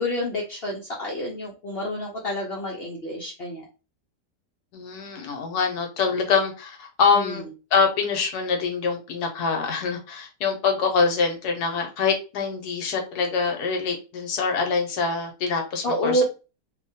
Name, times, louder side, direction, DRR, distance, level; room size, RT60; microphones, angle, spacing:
voice 1, 0.0-3.6 7.1-7.4 15.8-16.2, equal, 90° left, -2 dB, 0.5 m, -28 dB
voice 2, 4.7-7.4 7.7-16.2, left 5 dB, 70° left, 3 dB, 1.1 m, -24 dB
3.0 x 2.2 x 2.6 m, 0.31 s
omnidirectional pair, 1.8 m